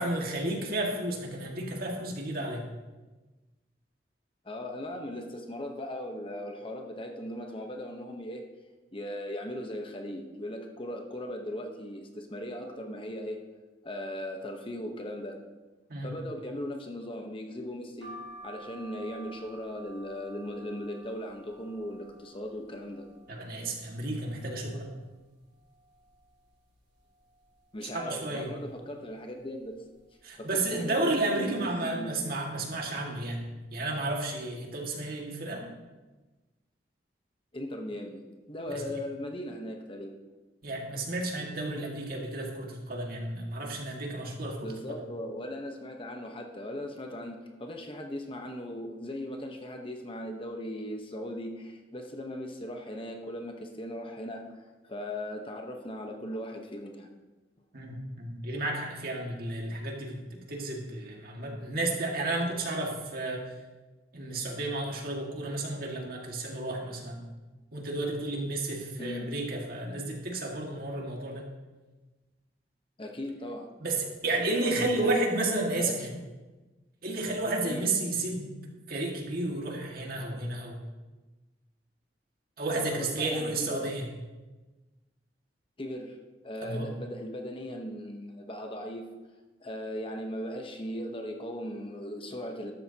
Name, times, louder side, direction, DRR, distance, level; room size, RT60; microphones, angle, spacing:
voice 1, 0.0-2.6 15.9-16.1 23.3-24.9 27.9-28.5 30.2-33.4 33.7-35.6 38.7-38.8 40.6-44.7 57.7-63.4 64.1-67.2 67.7-71.4 73.8-76.1 77.0-78.5 78.9-80.8 82.6-84.0 86.6-86.8, right 2 dB, 55° right, 0 dB, 2.0 m, -32 dB
voice 2, 4.4-8.5 8.9-13.4 13.8-15.4 16.0-18.1 18.4-23.1 27.7-29.8 30.4-32.1 37.5-40.2 40.9-41.0 44.6-57.1 69.0-69.3 73.0-73.7 74.2-75.5 75.8-76.1 77.6-78.0 82.7-83.9 85.8-86.2 86.4-89.1 89.6-92.7, left 1 dB, 30° left, 3 dB, 1.0 m, -38 dB
sound 1, 18.0-23.7 24.1-24.9 25.3-25.4 25.6-26.7 27.2-27.6 28.3-28.6 29.4-29.7 29.9-30.1, right 1 dB, 80° right, 3.5 m, -51 dB
13.0 x 12.5 x 2.9 m, 1.2 s
head